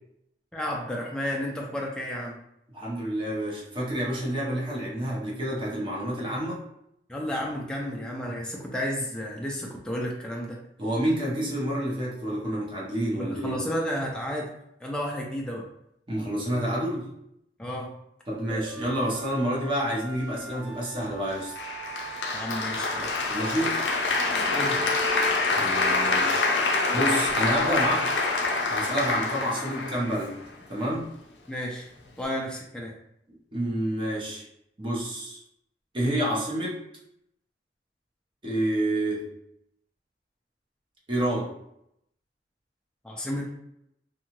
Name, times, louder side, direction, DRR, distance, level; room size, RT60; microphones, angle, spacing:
voice 1, 0.5-2.4 7.1-10.6 13.2-14.5 14.8-15.7 17.6-17.9 22.3-23.2 24.5-24.9 31.5-31.9 32.2-33.0 43.0-43.5, equal, 5° left, -2 dB, 0.4 m, -32 dB
voice 2, 2.7-6.6 10.8-13.6 16.1-17.1 18.3-21.6 23.3-23.8 25.5-26.5 26.9-28.1 28.7-30.4 30.7-31.1 33.5-34.4 34.8-35.4 35.9-36.8 38.4-39.3 41.1-41.5, right 1 dB, 30° right, -4 dB, 0.8 m, -28 dB
sound 1, 18.5-23.6 24.0-24.1 24.6-26.2, left 1 dB, 60° right, 0.7 m, -40 dB
Applause, 21.6-30.6, left 3 dB, 85° left, 0.5 m, -26 dB
2.7 x 2.3 x 2.9 m, 0.77 s
head